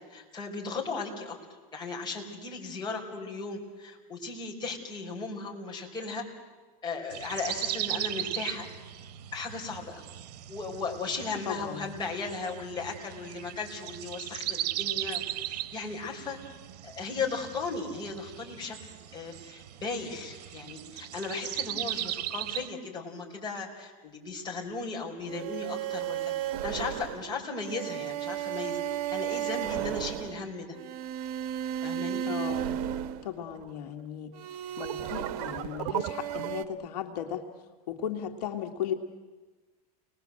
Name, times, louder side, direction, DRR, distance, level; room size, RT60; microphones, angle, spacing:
voice 1, 0.1-1.4 1.7-6.2 6.8-8.7 9.3-10.0 10.5-16.4 16.8-30.7 31.8-32.2, left 4 dB, 20° left, 0 dB, 5.3 m, -36 dB
sound 1, 7.1-22.7, right 13 dB, 80° right, 1.0 m, -38 dB
voice 2, 11.5-11.9 32.2-32.7 33.2-37.5 37.9-38.9, left 9 dB, 80° left, 5 dB, 2.1 m, -36 dB
sound 2, 25.3-33.8 34.3-36.6, right 11 dB, 65° right, 1.2 m, -34 dB
30.0 x 20.5 x 7.8 m, 1.3 s
supercardioid pair, 135°, 20 cm